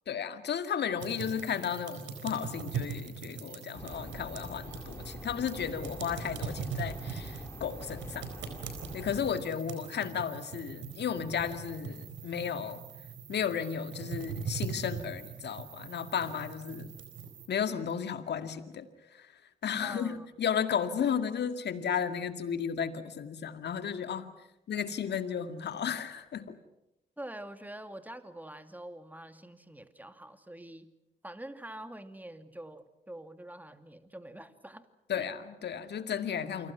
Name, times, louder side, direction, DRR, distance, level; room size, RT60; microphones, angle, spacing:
voice 1, 0.1-8.3 8.9-12.8 13.3-16.9 17.5-18.9 19.2-19.3 19.6-24.3 24.7-26.6 35.1-36.7, left 8 dB, 55° left, 9 dB, 2.1 m, -34 dB
sound 1, 1.0-17.5, right 6 dB, 65° right, 4.3 m, -41 dB
sound 2, 3.7-9.3, left 2 dB, 10° left, 5.0 m, -45 dB
voice 2, 19.8-20.3 27.2-30.9 31.2-34.9 35.2-35.3, right 1 dB, 10° right, 8 dB, 2.5 m, -45 dB
28.5 x 25.5 x 6.0 m, 0.90 s
hypercardioid pair, 40°, 21 cm